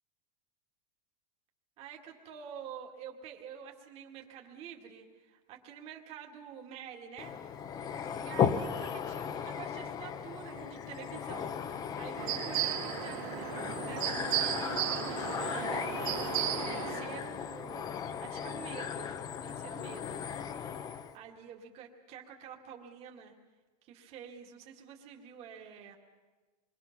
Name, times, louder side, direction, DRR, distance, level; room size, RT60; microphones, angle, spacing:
voice 1, 1.8-7.4 8.1-15.9 16.6-19.1 19.4-20.2 21.1-23.3 23.8-26.0, right 8 dB, 30° right, 1 dB, 2.2 m, -48 dB
sound 1, 7.2-21.1, left 7 dB, 20° left, 0.7 m, -36 dB
sound 2, 12.2-17.2, right 12 dB, 55° right, 2.1 m, -35 dB
28.0 x 23.0 x 6.0 m, 1.3 s
supercardioid pair, 170°, 21 cm